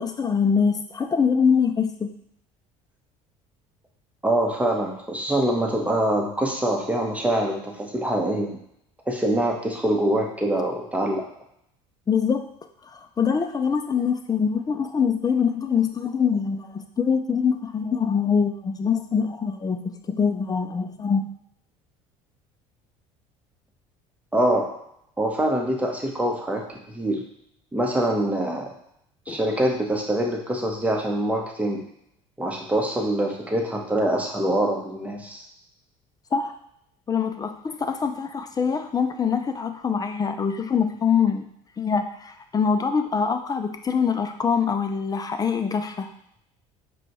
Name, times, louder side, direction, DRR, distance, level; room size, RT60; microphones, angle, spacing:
voice 1, 0.0-2.1 12.1-12.5 12.9-21.2 29.3-29.4 36.3-36.5 37.1-41.5 41.8-46.1, left 6 dB, 25° left, 7 dB, 0.4 m, -24 dB
voice 2, 4.2-8.6 9.1-11.3 24.3-24.7 25.2-27.2 27.7-28.7 29.3-31.8 32.4-35.4, right 1 dB, 10° right, 1 dB, 0.9 m, -24 dB
5.0 x 2.3 x 3.0 m, 0.74 s
hypercardioid pair, 75°, 16 cm